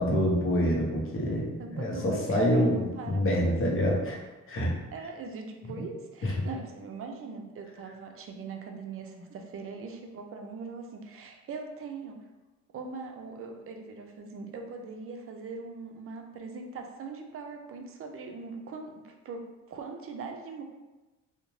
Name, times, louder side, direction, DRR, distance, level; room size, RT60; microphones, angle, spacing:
voice 1, 0.0-4.2 4.5-4.7 6.2-6.4, equal, 45° left, -2 dB, 0.8 m, -26 dB
voice 2, 1.6-3.5 4.9-12.2 12.7-20.6, right 4 dB, 45° right, 3 dB, 0.5 m, -41 dB
2.6 x 2.1 x 3.0 m, 1.1 s
cardioid pair, 90°, 30 cm